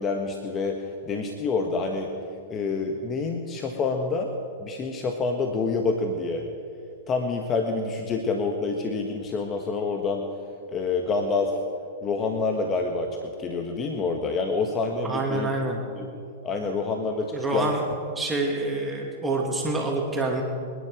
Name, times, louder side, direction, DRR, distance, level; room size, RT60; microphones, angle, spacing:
voice 1, 0.0-2.1 2.5-4.3 4.6-6.4 7.1-10.3 10.7-11.6 12.0-15.5 16.0-16.1 16.4-17.7, left 4 dB, 30° left, 3 dB, 1.4 m, -27 dB
voice 2, 15.0-15.8 17.3-17.8 18.2-20.4, right 2 dB, 10° right, -1 dB, 2.6 m, -27 dB
25.0 x 10.5 x 5.1 m, 2.4 s
hypercardioid pair, 110°, 0 cm